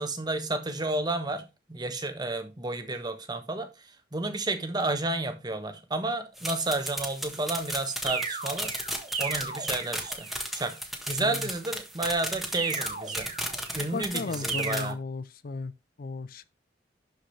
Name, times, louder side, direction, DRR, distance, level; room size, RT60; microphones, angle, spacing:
voice 1, 0.0-1.4 1.7-8.7 9.2-10.3 10.5-10.7 11.1-13.3 13.7-15.0, right 2 dB, 25° right, 1.3 m, -31 dB
sound 1, 6.4-14.9, equal, ahead, 1.5 m, -35 dB
sound 2, 8.1-10.5 12.6-13.9 14.5-14.9, right 5 dB, 40° right, 1.7 m, -35 dB
voice 2, 13.9-15.7 16.0-16.5, left 3 dB, 55° left, 0.5 m, -35 dB
12.0 x 5.1 x 3.3 m
head